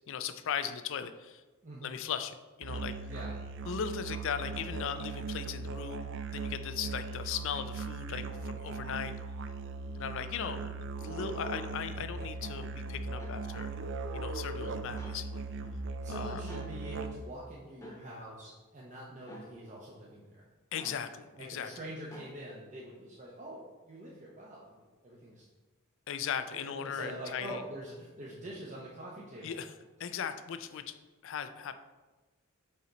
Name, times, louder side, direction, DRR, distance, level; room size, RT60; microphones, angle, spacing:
voice 1, 0.1-1.4 1.8-2.9 3.7-9.1 9.9-13.7 14.1-15.4 16.1-16.4 20.7-21.7 26.1-27.6 29.4-29.7 30.0-30.9 31.2-31.8, left 7 dB, 60° left, 10 dB, 0.4 m, -38 dB
voice 2, 1.6-1.9 3.1-3.3 11.9-12.0 15.4-15.6 16.0-20.4 21.4-25.5 26.5-29.6, right 1 dB, 35° right, -5 dB, 0.8 m, -45 dB
Musical instrument, 2.6-17.4, right 3 dB, 55° right, 0.4 m, -39 dB
sound 1, 11.2-11.4 13.1-13.4 15.0-15.2 16.5-16.7 17.8-18.0 19.2-19.5 20.7-21.0 22.1-22.3, equal, 15° left, 1.0 m, -49 dB
5.6 x 4.4 x 3.9 m, 1.2 s
head